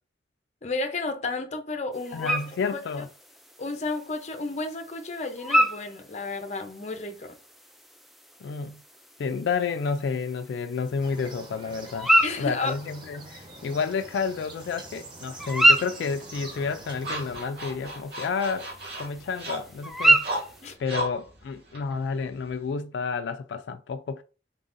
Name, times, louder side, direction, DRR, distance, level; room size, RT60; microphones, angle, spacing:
voice 1, 0.6-2.4 2.7-2.8 3.6-7.3 12.2-12.7 20.6-20.7, left 3 dB, 40° left, 0.6 m, -32 dB
sound 1, 1.9-20.7, right 1 dB, ahead, 0.3 m, -29 dB
voice 2, 2.1-3.1 8.4-8.8 9.2-12.1 12.4-18.7 19.0-20.3 20.8-24.2, left 5 dB, 85° left, 0.3 m, -30 dB
sound 2, 11.0-17.4, right 2 dB, 25° right, 0.8 m, -45 dB
sound 3, 16.2-22.7, right 1 dB, 60° right, 1.8 m, -37 dB
3.8 x 3.7 x 2.5 m
head